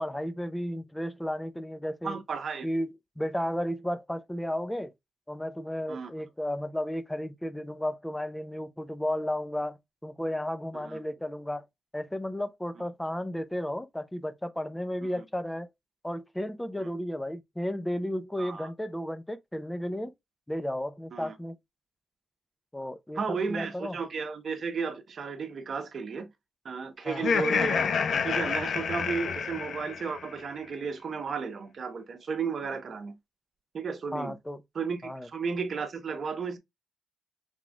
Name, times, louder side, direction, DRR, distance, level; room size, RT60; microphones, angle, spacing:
voice 1, 0.0-2.2 2.6-4.9 5.3-11.7 11.9-15.7 16.0-20.1 20.5-21.6 22.7-24.0 27.0-27.3 34.1-34.6 35.0-35.3, equal, 10° left, 0.7 m, -33 dB
voice 2, 2.0-2.7 5.9-6.1 10.7-11.0 15.2-15.3 16.8-16.9 18.4-18.7 21.1-21.3 23.1-26.3 26.6-27.9 28.2-33.2 33.7-34.3 34.7-36.6, right 5 dB, 60° right, 1.1 m, -34 dB
Laughter, 27.1-30.3, left 6 dB, 75° left, 0.8 m, -28 dB
5.9 x 3.6 x 2.4 m
cardioid pair, 65°, 0 cm